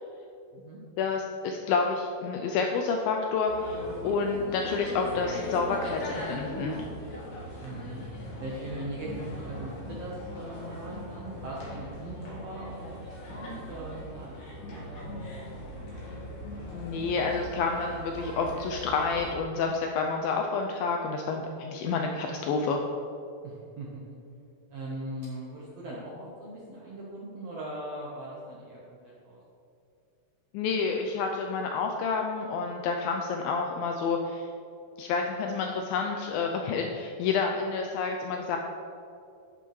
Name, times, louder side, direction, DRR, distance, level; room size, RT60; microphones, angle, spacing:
voice 1, 1.0-6.9 16.7-22.8 30.5-34.5 35.0-38.6, left 4 dB, 85° left, 2 dB, 2.1 m, -29 dB
sound 1, 3.5-19.4, equal, 55° left, 3.0 m, -40 dB
voice 2, 7.6-8.0 8.4-13.0 13.3-15.4 23.4-24.0 24.7-29.4, right 1 dB, 85° right, -5 dB, 1.4 m, -40 dB
11.5 x 6.9 x 3.1 m, 2.6 s
omnidirectional pair, 4.6 m